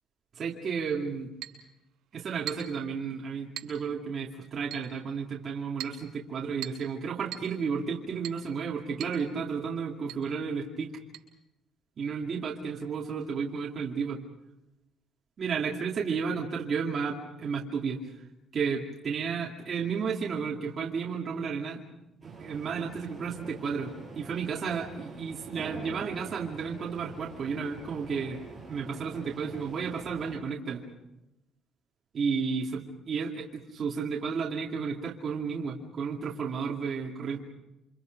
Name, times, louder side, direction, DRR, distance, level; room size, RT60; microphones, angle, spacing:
voice 1, 0.4-1.3 2.1-10.9 12.0-14.2 15.4-18.0 18.5-21.8 22.2-28.4 28.7-30.8 32.1-37.4, right 5 dB, 35° right, -3 dB, 2.4 m, -32 dB
Chink clink, 1.4-1.6 2.5-2.8 3.6-3.8 4.7-4.9 5.8-6.0 6.6-6.9 7.3-7.5 8.2-8.4 9.0-9.2 9.5-9.6 10.1-10.2 11.1-11.2, right 12 dB, 70° right, 7.0 m, -40 dB
sound 1, 22.2-30.4, right 3 dB, 5° right, 7.6 m, -46 dB
29.0 x 26.5 x 5.3 m, 0.93 s
cardioid pair, 170°, 0 cm